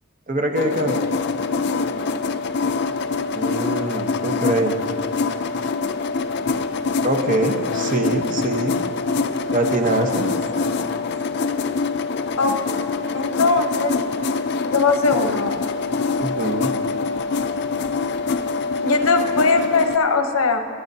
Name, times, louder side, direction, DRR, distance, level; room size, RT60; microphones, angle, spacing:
voice 1, 0.3-1.0 3.3-4.7 7.0-8.7 9.5-10.3 16.2-16.7, right 1 dB, 40° right, 4 dB, 0.9 m, -23 dB
sound 1, 0.6-20.0, left 4 dB, 55° left, 0.4 m, -24 dB
voice 2, 12.4-12.7 13.1-13.9 14.6-15.7 18.8-20.6, left 4 dB, 80° left, 6 dB, 0.8 m, -20 dB
25.0 x 9.5 x 2.7 m, 2.7 s
head